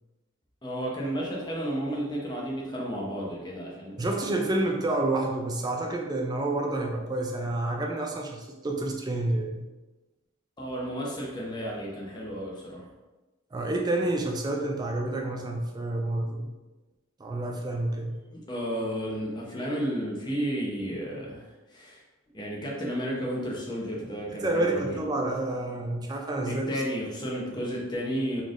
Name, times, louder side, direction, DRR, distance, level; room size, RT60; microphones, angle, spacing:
voice 1, 0.6-4.2 10.6-12.9 18.3-21.4 21.7-22.0 22.3-25.0 26.4-28.4, equal, 20° left, -3 dB, 0.8 m, -32 dB
voice 2, 4.0-9.7 13.5-16.5 17.2-18.2 24.3-26.7, right 2 dB, 20° right, 1 dB, 0.3 m, -29 dB
4.0 x 3.3 x 2.5 m, 1.1 s
head